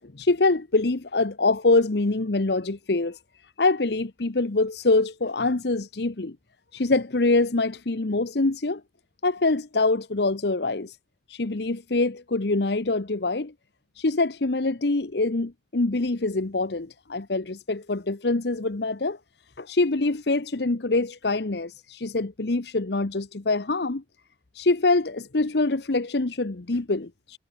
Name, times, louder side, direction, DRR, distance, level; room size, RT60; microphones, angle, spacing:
voice 1, 0.0-3.2 3.6-6.4 6.7-8.8 9.2-11.0 11.3-13.5 14.0-19.2 19.6-24.0 24.5-27.4, left 3 dB, 60° left, 1.0 m, -24 dB
head